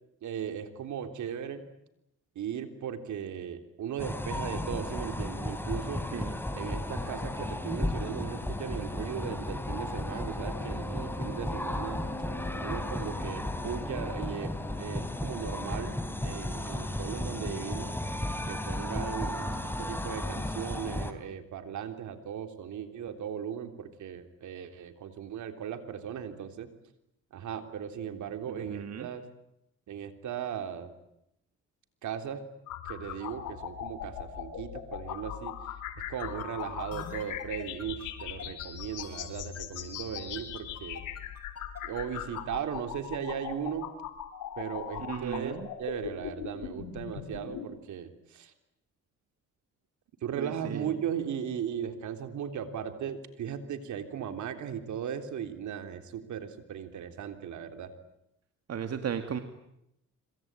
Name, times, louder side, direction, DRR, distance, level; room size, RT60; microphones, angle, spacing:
voice 1, 0.2-1.6 2.4-6.0 6.5-12.0 12.6-16.0 16.2-17.9 18.5-26.7 27.3-29.3 29.9-30.9 32.0-32.4 32.9-35.5 36.0-41.0 41.8-43.9 44.6-48.5 50.2-57.9, right 8 dB, 75° right, 8 dB, 3.6 m, -37 dB
sound 1, 4.0-21.1, left 1 dB, 5° left, 3.7 m, -34 dB
voice 2, 28.5-29.1 45.1-45.7 50.3-50.9 58.7-59.4, right 8 dB, 55° right, 7 dB, 2.3 m, -35 dB
sound 2, 32.7-47.6, left 10 dB, 90° left, 4.3 m, -40 dB
sound 3, 36.2-42.4, left 7 dB, 55° left, 5.0 m, -45 dB
26.5 x 25.0 x 9.0 m, 0.82 s
cardioid pair, 90°, 30 cm